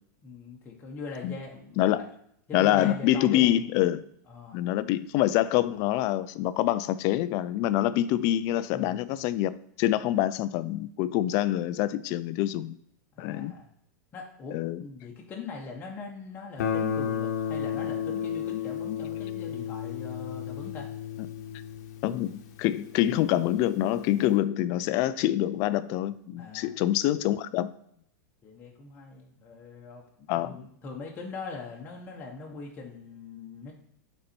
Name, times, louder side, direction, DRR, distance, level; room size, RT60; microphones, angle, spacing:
voice 1, 0.2-2.1 2.5-3.5 4.3-4.6 8.7-9.1 13.1-13.7 14.1-20.9 26.4-26.7 28.4-33.7, left 4 dB, 20° left, 1.0 m, -41 dB
voice 2, 2.5-4.0 4.5-9.5 9.8-12.8 13.2-13.5 14.5-14.8 22.0-27.7 30.3-30.5, left 13 dB, 35° left, 0.3 m, -26 dB
Guitar, 16.6-23.3, left 8 dB, 60° left, 0.9 m, -33 dB
6.5 x 4.1 x 4.4 m
supercardioid pair, 155°, 10 cm